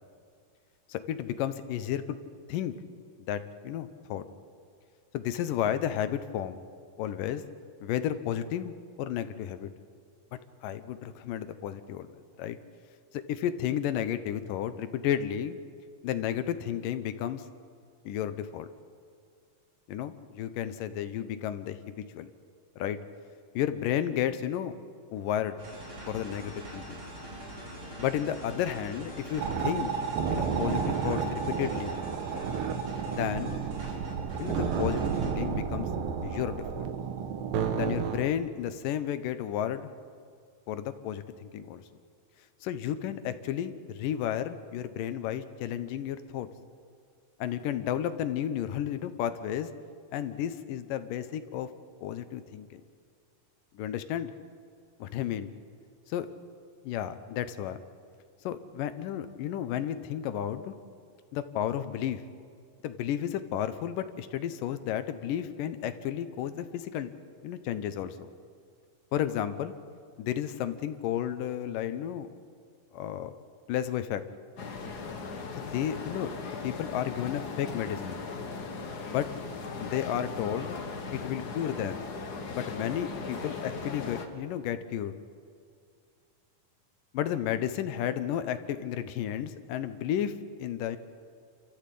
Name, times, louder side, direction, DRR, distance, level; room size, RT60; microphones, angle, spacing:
voice 1, 0.9-2.2 2.5-2.7 3.3-4.3 5.1-6.6 7.0-7.4 7.8-9.7 10.3-12.1 12.4-12.6 13.1-15.6 16.0-17.4 18.1-18.7 19.9-22.3 22.8-23.0 23.5-24.8 25.1-25.6 26.1-27.0 28.0-29.9 30.3-31.9 33.1-33.6 34.4-35.9 36.2-36.8 37.7-39.9 40.7-41.8 42.6-46.5 47.4-49.7 50.1-51.7 52.0-52.8 53.7-54.3 55.0-55.5 56.1-56.3 56.8-57.8 58.4-60.8 61.3-62.2 62.8-67.1 67.4-68.3 69.1-69.7 70.2-72.3 72.9-73.3 73.7-74.2 75.6-78.2 79.1-79.3 79.8-80.8 81.1-82.0 82.5-85.1 87.1-91.0, left 10 dB, 75° left, 11 dB, 2.5 m, -32 dB
sound 1, 25.6-35.4, equal, 35° right, 5.3 m, -44 dB
sound 2, 29.4-38.2, right 6 dB, 80° right, 2.9 m, -31 dB
sound 3, 74.6-84.3, left 4 dB, 50° left, 1.1 m, -38 dB
29.0 x 13.5 x 8.5 m, 2.2 s
omnidirectional pair, 4.1 m